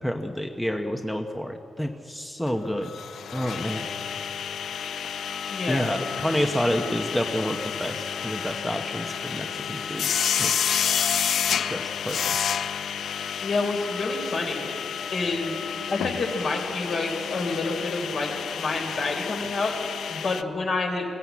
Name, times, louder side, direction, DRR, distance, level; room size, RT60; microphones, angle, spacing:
voice 1, 0.0-2.9 3.3-3.9 5.7-10.1 10.4-10.7 11.7-12.4, equal, 5° left, 4 dB, 0.9 m, -29 dB
sound 1, 2.4-20.6, left 4 dB, 35° left, 5.2 m, -46 dB
sound 2, 2.5-2.6 2.8-20.4, left 8 dB, 80° left, 0.6 m, -30 dB
voice 2, 5.5-5.9 13.4-14.7 15.1-15.6 15.9-18.3 18.6-19.7 20.1-21.1, left 3 dB, 55° left, 2 dB, 3.9 m, -28 dB
21.5 x 16.0 x 8.4 m, 2.7 s
wide cardioid pair, 130°, 0 cm